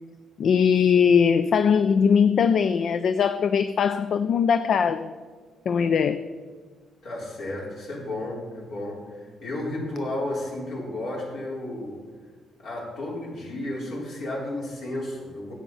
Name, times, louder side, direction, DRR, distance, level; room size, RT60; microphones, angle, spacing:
voice 1, 0.4-5.2 5.7-6.2, left 6 dB, 60° left, 11 dB, 0.4 m, -20 dB
voice 2, 7.0-12.0 12.6-15.5, left 1 dB, 75° left, -4 dB, 4.2 m, -33 dB
11.5 x 8.3 x 5.6 m, 1.6 s
cardioid pair, 95°, 0 cm